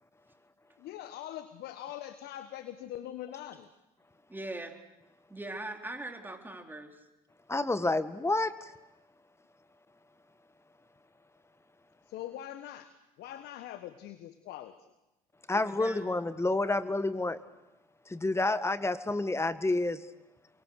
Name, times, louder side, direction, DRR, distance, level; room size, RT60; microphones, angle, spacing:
voice 1, 0.8-3.7 12.1-12.9 13.2-14.9, left 12 dB, 60° left, 11 dB, 1.4 m, -42 dB
voice 2, 4.3-4.8 5.3-7.0 15.5-16.1, right 2 dB, 10° right, 3 dB, 4.1 m, -41 dB
voice 3, 7.5-8.7 15.5-17.4 18.1-20.0, left 2 dB, 15° left, 12 dB, 1.7 m, -29 dB
29.0 x 23.0 x 6.6 m, 0.98 s
hypercardioid pair, 65°, 18 cm